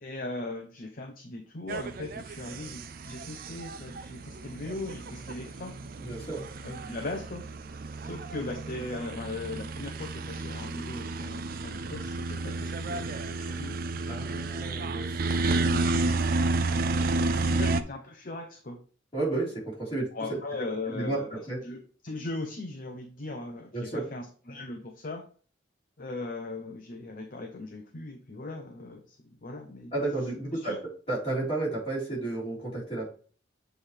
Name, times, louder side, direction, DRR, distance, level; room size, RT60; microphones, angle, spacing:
voice 1, 0.0-5.7 6.6-7.4 8.0-14.1 15.0-16.2 17.4-18.8 20.1-25.2 26.0-29.9 30.6-30.8, left 2 dB, 45° left, 3 dB, 0.8 m, -39 dB
sound 1, 1.7-17.8, right 3 dB, 45° right, 0.5 m, -31 dB
voice 2, 6.0-6.5 14.1-15.2 16.9-17.6 19.1-20.4 20.9-21.6 23.7-24.0 29.9-30.8 31.1-33.1, right 2 dB, 25° left, -6 dB, 3.6 m, -32 dB
7.8 x 3.3 x 4.5 m, 0.41 s
head